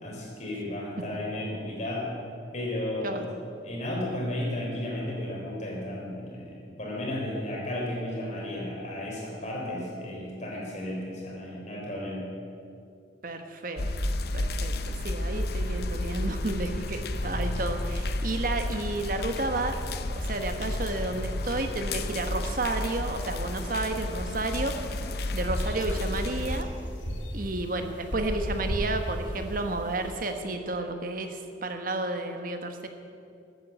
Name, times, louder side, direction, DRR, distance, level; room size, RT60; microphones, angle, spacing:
voice 1, 0.0-2.1 2.5-3.2 3.6-12.2, left 1 dB, 40° left, -3 dB, 3.9 m, -33 dB
voice 2, 13.2-25.0 25.3-26.7 27.3-32.9, right 2 dB, 50° right, 6 dB, 1.2 m, -32 dB
sound 1, 13.8-26.6, left 1 dB, 55° left, 0.7 m, -32 dB
sound 2, 23.7-30.3, equal, 80° left, 2.4 m, -35 dB
13.5 x 9.3 x 8.0 m, 2.5 s
head